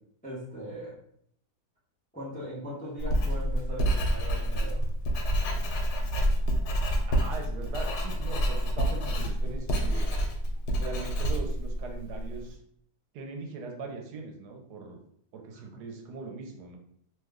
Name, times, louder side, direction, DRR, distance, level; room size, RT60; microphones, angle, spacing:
voice 1, 0.2-1.0 2.1-4.8 15.5-15.8, equal, 10° left, -7 dB, 0.5 m, -39 dB
Writing, 3.0-12.4, equal, 75° left, 1.2 m, -28 dB
voice 2, 7.1-10.1 10.8-12.6 13.1-15.0 15.3-16.8, right 4 dB, 75° right, 2 dB, 1.2 m, -40 dB
2.9 x 2.2 x 3.5 m, 0.67 s
omnidirectional pair, 1.8 m